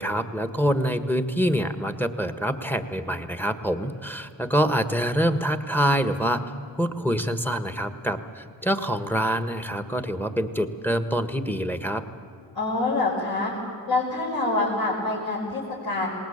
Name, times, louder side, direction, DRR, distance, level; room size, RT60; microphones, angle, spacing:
voice 1, 0.0-6.4 6.8-12.0, equal, 5° left, 10 dB, 1.5 m, -25 dB
voice 2, 12.5-13.5 13.9-16.1, left 2 dB, 55° left, -7 dB, 5.6 m, -26 dB
20.0 x 18.5 x 8.8 m, 2.4 s
cardioid pair, 50°, 44 cm